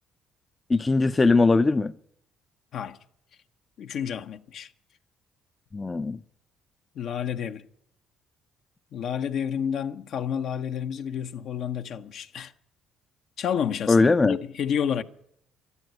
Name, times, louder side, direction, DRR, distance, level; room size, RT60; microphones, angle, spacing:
voice 1, 0.7-1.9 5.7-6.2 13.9-14.4, left 3 dB, 25° left, 0.5 m, -20 dB
voice 2, 3.8-4.7 6.9-7.6 8.9-12.5 13.4-15.0, left 8 dB, 65° left, 0.9 m, -30 dB
12.5 x 11.0 x 9.1 m
supercardioid pair, 80°, 0 cm